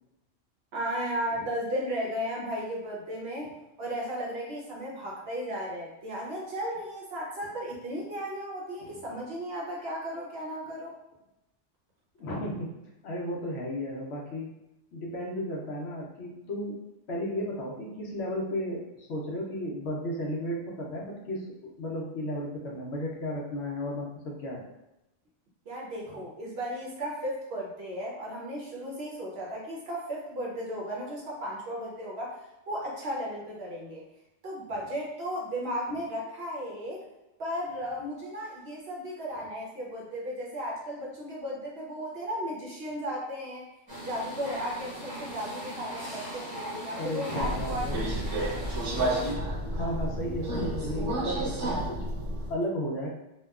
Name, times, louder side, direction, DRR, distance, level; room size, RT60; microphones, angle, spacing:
voice 1, 0.7-3.5 3.8-11.0 25.7-34.0 34.4-37.0 37.4-43.7 44.0-48.0, equal, 60° right, -3 dB, 0.8 m, -35 dB
voice 2, 12.2-12.7 13.0-14.6 14.9-16.8 17.1-24.7 26.1-26.2 46.9-48.0 49.7-52.0 52.5-53.1, left 1 dB, 65° left, -1 dB, 0.8 m, -34 dB
sound 1, 43.9-49.3, equal, 20° right, 0.8 m, -39 dB
Subway metro underground, 47.4-52.5, right 1 dB, 85° right, 1.1 m, -31 dB
2.8 x 2.2 x 2.3 m, 0.93 s
omnidirectional pair, 1.3 m